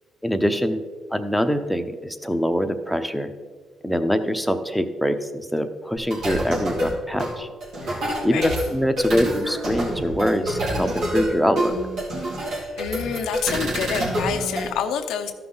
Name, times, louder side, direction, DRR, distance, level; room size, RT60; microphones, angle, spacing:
voice 1, 0.2-0.8 1.1-3.3 3.8-7.5 7.9-11.7, equal, ahead, 8 dB, 0.8 m, -24 dB
sound 1, 6.1-14.7, equal, 80° right, 3.0 m, -27 dB
voice 2, 12.8-15.3, left 7 dB, 85° left, 7 dB, 0.8 m, -27 dB
13.5 x 5.7 x 4.0 m, 1.5 s
cardioid pair, 90°, 0 cm